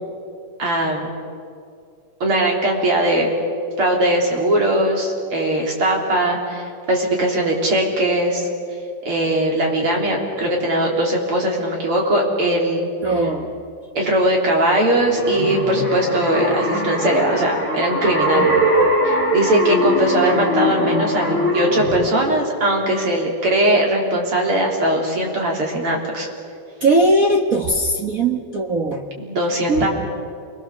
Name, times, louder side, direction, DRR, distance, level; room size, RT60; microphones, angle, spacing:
voice 1, 0.6-1.1 2.2-3.3 3.8-8.5 9.0-13.1 13.9-18.7 19.0-26.3 29.2-29.9, right 1 dB, 45° right, -1 dB, 4.4 m, -20 dB
voice 2, 13.0-13.6 18.3-18.6 26.8-29.0 29.7-29.9, right 1 dB, 70° right, 1 dB, 0.8 m, -19 dB
sound 1, 14.9-22.1, equal, 15° left, 5.4 m, -21 dB
28.5 x 21.5 x 7.3 m, 2.4 s
omnidirectional pair, 3.5 m